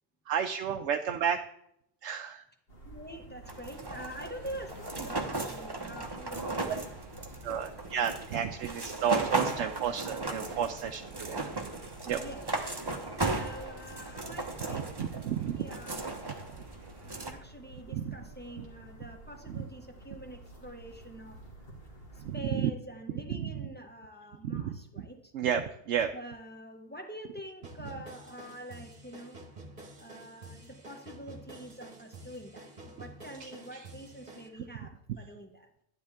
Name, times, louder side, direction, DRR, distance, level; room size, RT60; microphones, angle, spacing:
voice 1, 0.3-1.4 2.0-2.4 6.7-6.8 7.4-11.5 12.1-12.2 14.7-15.7 17.9-18.2 19.5-19.6 22.2-22.7 23.3-23.7 24.4-24.8 25.3-26.1 33.4-33.9, right 8 dB, 80° right, 5 dB, 0.9 m, -32 dB
sound 1, 2.7-22.4, right 2 dB, 55° left, 2.2 m, -51 dB
voice 2, 2.8-6.8 7.3-7.4 12.1-12.4 12.9-15.2 15.6-16.0 17.0-21.4 22.1-25.3 26.1-29.4 30.0-35.7, equal, 10° left, 2 dB, 1.1 m, -46 dB
sound 2, 3.4-17.3, right 2 dB, 20° right, 1.0 m, -36 dB
sound 3, 27.6-34.5, right 2 dB, 40° right, 1.5 m, -49 dB
11.0 x 10.0 x 3.6 m, 0.76 s
omnidirectional pair, 1.2 m